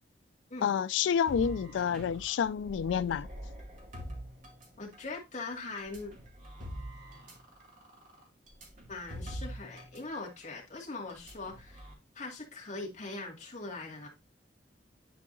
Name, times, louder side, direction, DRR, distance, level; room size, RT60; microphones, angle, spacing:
voice 1, 0.6-3.3, left 7 dB, 85° left, 0.3 m, -29 dB
sound 1, 1.3-5.1 5.8-10.0 10.3-10.4 11.1-11.9, equal, 45° right, 2.2 m, -45 dB
voice 2, 4.8-6.1 8.9-11.8 12.1-14.1, left 3 dB, 40° left, 2.1 m, -41 dB
10.0 x 4.7 x 2.6 m
head